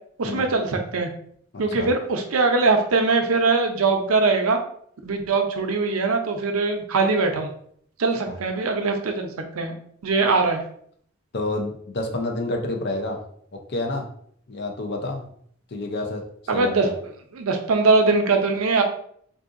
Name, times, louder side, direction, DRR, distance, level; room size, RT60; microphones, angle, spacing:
voice 1, 0.2-1.1 1.6-4.6 5.0-7.5 8.0-9.3 9.5-9.7 10.0-10.6 16.5-16.9 17.3-18.8, right 3 dB, 85° right, 4 dB, 0.6 m, -21 dB
voice 2, 1.5-1.9 8.3-8.4 11.3-13.2 13.7-14.1 14.5-15.3 15.7-16.2 16.5-16.9, left 2 dB, 50° left, 2 dB, 0.6 m, -29 dB
3.6 x 2.6 x 2.5 m, 0.63 s
head